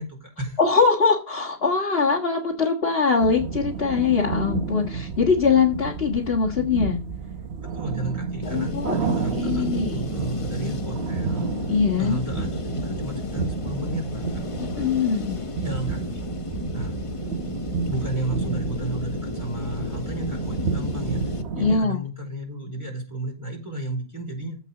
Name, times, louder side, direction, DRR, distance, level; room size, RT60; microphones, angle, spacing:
voice 1, 0.0-0.6 4.9-5.0 7.6-11.5 12.0-14.4 15.6-16.2 16.7-17.0 17.9-21.2 21.6-24.6, right 1 dB, 15° right, 0 dB, 4.3 m, -33 dB
voice 2, 0.6-7.0 8.5-10.0 11.7-12.2 14.6-15.4 21.6-22.0, left 5 dB, 70° left, -2 dB, 2.0 m, -22 dB
sound 1, 3.2-21.8, right 5 dB, 85° right, 1.2 m, -31 dB
sound 2, 8.4-21.4, left 4 dB, 35° left, 0.9 m, -34 dB
14.5 x 5.3 x 4.0 m, 0.33 s
omnidirectional pair, 1.1 m